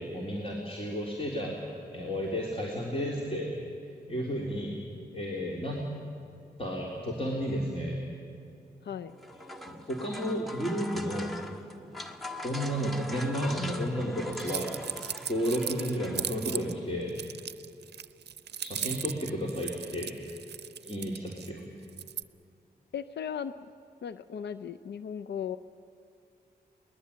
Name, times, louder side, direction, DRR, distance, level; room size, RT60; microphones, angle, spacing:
voice 1, 0.0-3.5 4.1-4.7 5.1-5.8 6.6-8.0 9.7-11.4 12.4-14.7 15.3-17.1 18.6-20.1 20.8-21.6, equal, 35° left, -3 dB, 3.6 m, -32 dB
sound 1, 9.1-16.7, left 1 dB, ahead, 1.5 m, -42 dB
sound 2, 14.3-16.7 17.1-21.5 21.9-22.2, right 8 dB, 75° right, 0.6 m, -37 dB
voice 2, 22.9-23.5 24.0-25.6, left 8 dB, 80° left, 12 dB, 0.5 m, -36 dB
21.5 x 20.0 x 8.5 m, 2.5 s
cardioid pair, 50°, 17 cm